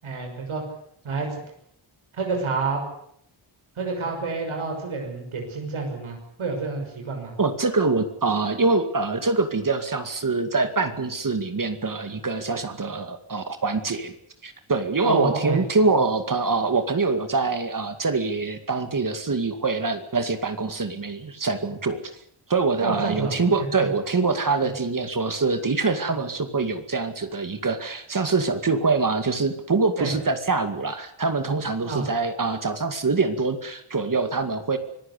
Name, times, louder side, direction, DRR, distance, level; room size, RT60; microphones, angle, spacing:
voice 1, 0.0-0.6 1.0-1.3 2.1-2.8 3.8-7.3 15.0-15.6 22.8-23.4 23.8-23.9 30.0-30.1 31.9-32.1, right 4 dB, 85° right, 2 dB, 6.4 m, -28 dB
voice 2, 7.4-14.1 14.4-22.0 22.5-34.8, right 3 dB, 40° right, 9 dB, 2.3 m, -24 dB
25.0 x 16.5 x 8.4 m, 0.70 s
wide cardioid pair, 95°, 48 cm